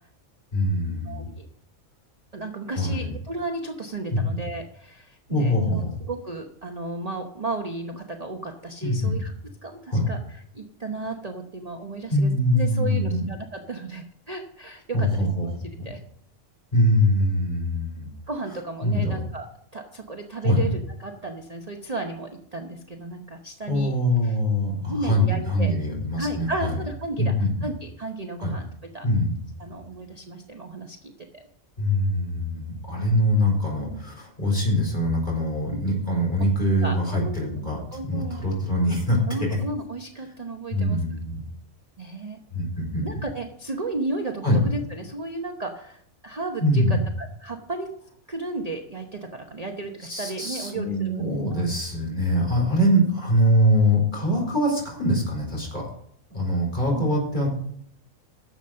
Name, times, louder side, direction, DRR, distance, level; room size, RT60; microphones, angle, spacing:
voice 1, 0.5-1.3 2.7-3.1 4.1-4.4 5.3-5.9 8.8-9.2 9.9-10.1 12.1-13.2 14.9-15.7 16.7-18.1 18.8-19.2 20.4-20.8 23.7-26.8 27.2-27.5 28.4-28.5 29.0-29.3 31.8-39.6 40.7-41.4 42.5-43.1 44.4-44.6 46.6-47.0 50.1-55.8 56.3-57.5, equal, 35° left, -2 dB, 4.5 m, -23 dB
voice 2, 1.0-1.5 2.3-5.8 6.1-9.3 9.6-10.2 10.5-15.5 15.8-16.0 18.3-19.5 19.7-23.9 24.3-24.4 24.7-25.7 26.2-27.3 27.6-28.7 28.9-29.0 29.6-31.5 33.0-33.4 36.8-37.5 37.9-38.4 39.3-41.0 42.0-42.4 43.0-47.9 48.3-51.1 51.4-51.7 56.9-57.2, right 2 dB, 30° right, 3 dB, 0.9 m, -34 dB
11.0 x 7.3 x 6.4 m, 0.69 s
omnidirectional pair, 1.5 m